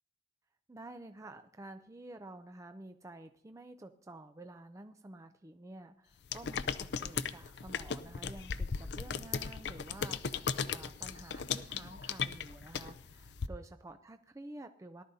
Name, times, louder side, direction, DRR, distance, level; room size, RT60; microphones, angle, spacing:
voice 1, 0.7-15.0, right 2 dB, 15° right, 7 dB, 0.4 m, -50 dB
sound 1, 6.3-13.5, left 6 dB, 70° left, 0.5 m, -37 dB
18.0 x 12.0 x 2.7 m, 0.67 s
head